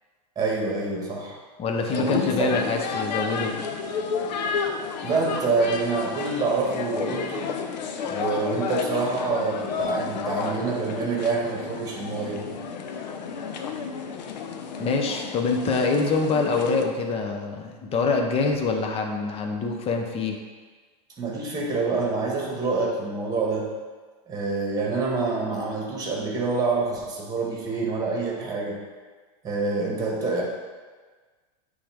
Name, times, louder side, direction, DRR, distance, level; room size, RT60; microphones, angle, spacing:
voice 1, 0.3-1.4 1.9-2.6 5.0-7.5 8.1-12.4 21.2-23.7 24.3-28.8 29.4-30.4, right 3 dB, 15° right, -2 dB, 1.7 m, -26 dB
voice 2, 1.6-3.6 14.8-20.4, left 4 dB, 30° left, 3 dB, 0.8 m, -25 dB
sound 1, 1.9-16.9, left 6 dB, 85° left, 0.6 m, -32 dB
8.7 x 3.5 x 3.6 m, 1.4 s
supercardioid pair, 120°, 21 cm